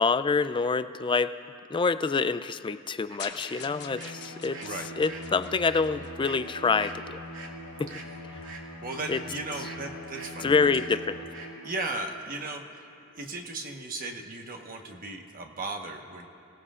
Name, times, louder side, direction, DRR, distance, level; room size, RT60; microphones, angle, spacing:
voice 1, 0.0-1.3 1.7-4.6 5.0-7.2 7.8-7.9 9.1-9.2 10.4-11.2, left 4 dB, 20° left, 12 dB, 0.4 m, -26 dB
sound 1, 3.1-3.2 3.5-9.8 10.1-10.3 10.7-10.9 11.3-11.5, right 3 dB, 65° right, 2.2 m, -46 dB
sound 2, 3.2-6.5, left 6 dB, 50° left, 1.1 m, -44 dB
Bowed string instrument, 3.4-12.0, equal, 90° left, 3.9 m, -43 dB
voice 2, 8.8-11.0 11.6-12.8 13.1-16.3, right 2 dB, 40° right, 3 dB, 1.2 m, -36 dB
30.0 x 18.0 x 2.5 m, 2.6 s
head